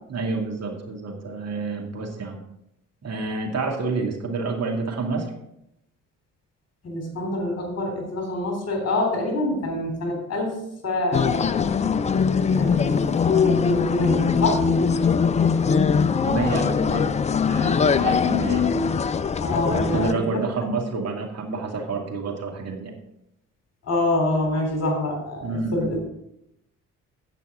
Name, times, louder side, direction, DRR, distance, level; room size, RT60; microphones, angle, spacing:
voice 1, 0.1-2.4 3.0-5.3 16.1-17.0 17.4-18.8 19.7-22.9 25.4-25.9, right 3 dB, 40° right, 0 dB, 2.3 m, -28 dB
voice 2, 6.8-10.6 10.8-11.6 12.6-12.9 13.3-14.6 19.4-20.4 23.8-26.0, left 2 dB, 40° left, 2 dB, 3.6 m, -25 dB
sound 1, 11.1-20.1, left 6 dB, 20° left, 0.4 m, -22 dB
17.0 x 5.8 x 3.8 m, 0.81 s
figure-of-eight pair, 40°, 41 cm